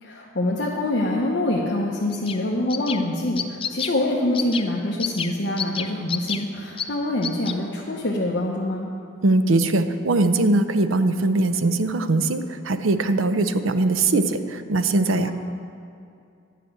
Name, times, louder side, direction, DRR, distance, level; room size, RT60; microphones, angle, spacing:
voice 1, 0.0-8.9 15.2-15.3, left 1 dB, 60° left, -3 dB, 1.0 m, -25 dB
sound 1, 2.1-2.4 2.7-3.0 3.4-3.9 4.3-4.7 5.0-5.3 5.6-6.4 6.8-6.9 7.2-7.5, left 8 dB, 25° left, 0.4 m, -28 dB
voice 2, 9.2-15.3, right 2 dB, 85° right, 10 dB, 0.7 m, -21 dB
11.5 x 6.0 x 8.7 m, 2.5 s
head